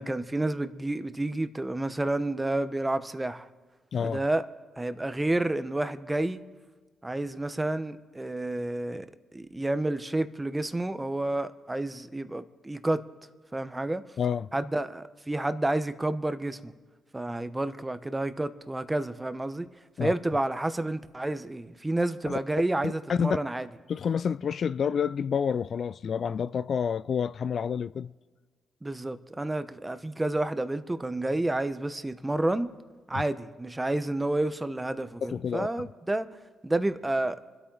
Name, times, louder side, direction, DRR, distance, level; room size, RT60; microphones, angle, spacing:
voice 1, 0.0-3.5 4.0-4.4 4.8-6.4 7.0-9.1 9.3-13.0 13.5-14.0 14.5-16.7 17.1-19.7 20.0-23.7 28.8-32.7 33.1-36.3 36.6-37.4, right 2 dB, 20° right, 1.0 m, -30 dB
voice 2, 14.2-14.5 20.0-20.1 22.3-22.4 22.8-23.4 23.9-28.1 33.1-33.2 35.3-35.7, left 7 dB, 60° left, 0.3 m, -28 dB
26.0 x 8.7 x 4.0 m
supercardioid pair, 55°, 0 cm